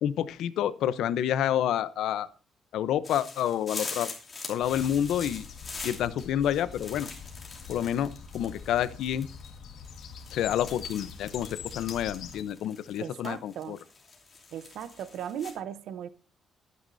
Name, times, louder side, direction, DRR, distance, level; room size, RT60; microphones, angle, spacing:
voice 1, 0.0-2.3 2.7-4.1 4.5-5.5 5.8-7.1 7.7-9.3 10.3-13.8, left 10 dB, 90° left, 0.7 m, -28 dB
sound 1, 3.0-15.5, left 4 dB, 25° left, 2.8 m, -43 dB
sound 2, 4.6-12.4, left 6 dB, 70° left, 1.7 m, -44 dB
voice 2, 13.0-13.8 14.5-16.1, right 9 dB, 80° right, 0.8 m, -37 dB
22.0 x 9.6 x 2.7 m
cardioid pair, 160°, 0 cm